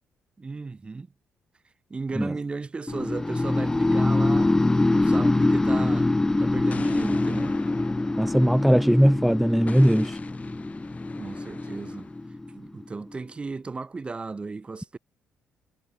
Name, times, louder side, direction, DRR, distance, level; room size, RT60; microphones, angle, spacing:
voice 1, 0.4-1.1 1.9-4.5 4.9-6.1 6.4-7.5 11.2-12.1 12.5-15.0, right 4 dB, 25° right, 2.2 m, -35 dB
sound 1, 2.9-12.8, left 2 dB, 15° left, 0.9 m, -24 dB
Explosion, 6.7-9.1 9.7-12.2, left 5 dB, 35° left, 1.0 m, -43 dB
voice 2, 8.2-10.2, equal, ahead, 0.4 m, -19 dB
cardioid pair, 85°, 4 cm